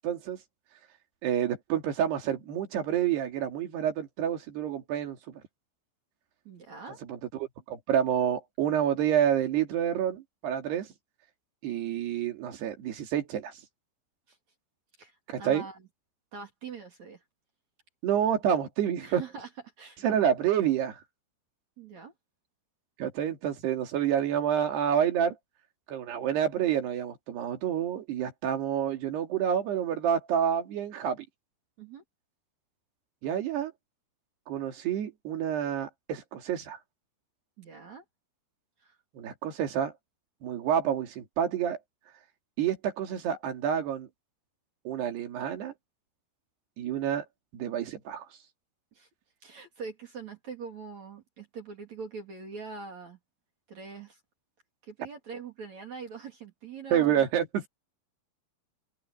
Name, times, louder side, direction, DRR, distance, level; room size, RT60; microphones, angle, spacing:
voice 1, 0.0-0.4 1.2-5.2 7.1-10.9 11.6-13.5 15.3-15.7 18.0-19.2 20.0-21.0 23.0-25.3 25.9-31.3 33.2-33.7 34.5-36.8 39.1-39.9 40.4-41.8 42.6-44.1 44.9-45.7 46.8-47.2 47.5-48.3 56.9-57.7, right 9 dB, 80° right, 4.6 m, -28 dB
voice 2, 6.5-7.0 14.3-14.4 15.0-15.9 16.3-17.2 19.0-19.5 19.8-20.0 21.8-22.1 31.8-32.0 37.6-38.0 38.8-39.0 48.9-49.1 49.4-53.2 53.7-54.2 54.8-57.3, right 5 dB, 45° right, 4.0 m, -43 dB
open air
omnidirectional pair, 4.7 m